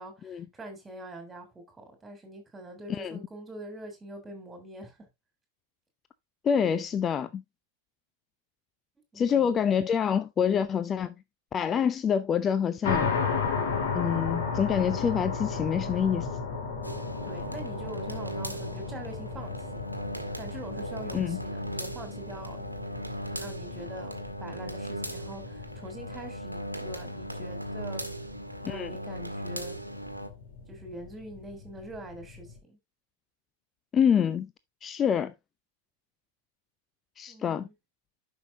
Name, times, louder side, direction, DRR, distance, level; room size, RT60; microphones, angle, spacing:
voice 1, 0.0-5.0 9.1-9.6 17.2-19.9 20.4-22.8 23.3-24.1 24.4-28.1 28.7-29.8 30.7-32.8 37.3-37.7, right 1 dB, 10° right, 3.4 m, -44 dB
voice 2, 6.4-7.4 9.1-11.1 11.5-13.1 13.9-16.3 21.1-21.4 28.6-28.9 33.9-34.5 34.8-35.3 37.2-37.7, left 7 dB, 25° left, 0.5 m, -26 dB
sound 1, 12.8-32.6, left 5 dB, 55° left, 2.5 m, -35 dB
sound 2, 16.8-30.3, right 1 dB, 90° right, 1.2 m, -38 dB
11.0 x 5.7 x 2.7 m
figure-of-eight pair, 90°, 0 cm